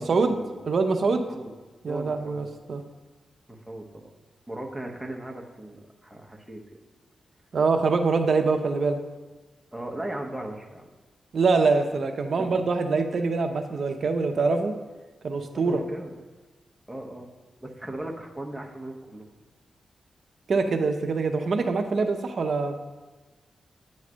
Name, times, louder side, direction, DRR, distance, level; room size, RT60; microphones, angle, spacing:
voice 1, 0.0-0.5 1.2-1.6 1.9-2.4 3.5-4.1 4.5-6.6 9.7-10.9 12.4-12.6 15.5-16.2 16.9-17.3 17.6-19.3, right 1 dB, ahead, -1 dB, 0.9 m, -37 dB
voice 2, 0.6-1.2 1.8-2.8 7.5-9.0 11.3-14.7 15.2-15.8 20.5-22.8, right 4 dB, 60° right, 6 dB, 0.7 m, -24 dB
9.3 x 3.2 x 6.1 m, 1.3 s
wide cardioid pair, 105°, 0 cm